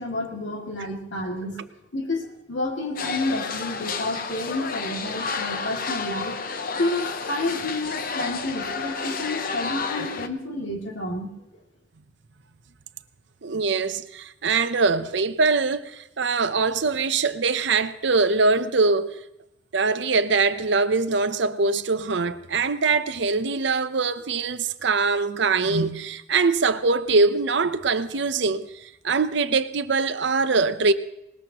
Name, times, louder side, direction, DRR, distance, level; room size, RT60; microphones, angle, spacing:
voice 1, 0.0-1.7 1.9-6.4 6.8-11.6, left 2 dB, 75° left, 2.5 m, -30 dB
sound 1, 3.0-10.3, left 5 dB, 50° left, 0.8 m, -31 dB
voice 2, 13.4-19.2 19.7-30.9, right 4 dB, 65° right, 0.7 m, -23 dB
20.0 x 19.5 x 3.0 m
head